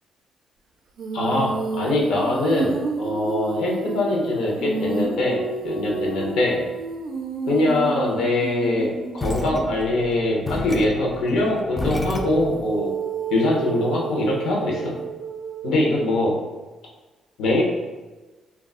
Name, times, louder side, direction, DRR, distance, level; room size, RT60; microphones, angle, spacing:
Female singing, 1.0-9.9 12.1-16.3, right 4 dB, 70° right, 0.3 m, -30 dB
voice 1, 1.1-6.6 7.5-12.9 13.3-15.0 15.6-16.4 17.4-17.6, left 2 dB, 80° left, -2 dB, 0.7 m, -23 dB
sound 1, 9.2-12.7, left 2 dB, 20° left, 0.3 m, -31 dB
2.3 x 2.0 x 3.5 m, 1.2 s
cardioid pair, 90°, 0 cm